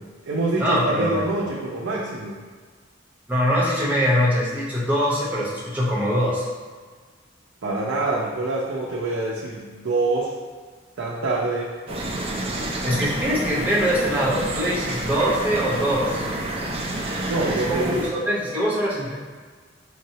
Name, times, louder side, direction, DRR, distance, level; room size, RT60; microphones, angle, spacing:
voice 1, 0.0-2.4 7.6-10.3 11.0-11.8 17.3-18.0, right 2 dB, 85° right, -5 dB, 0.5 m, -26 dB
voice 2, 0.6-1.5 3.3-6.5 12.8-16.2 17.0-19.1, equal, 10° right, -7 dB, 0.7 m, -23 dB
sound 1, 11.9-18.1, right 1 dB, 30° right, 0.4 m, -29 dB
5.7 x 2.0 x 2.7 m, 1.5 s
head